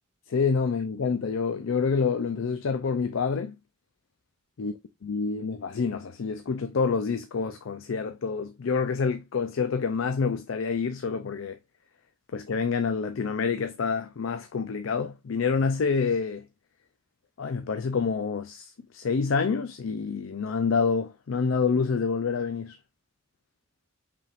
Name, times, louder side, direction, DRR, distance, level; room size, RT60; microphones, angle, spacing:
voice 1, 0.3-3.6 4.6-4.7 5.0-11.6 12.3-16.4 17.4-22.8, left 5 dB, 75° left, 0.5 m, -27 dB
5.4 x 3.6 x 2.5 m
head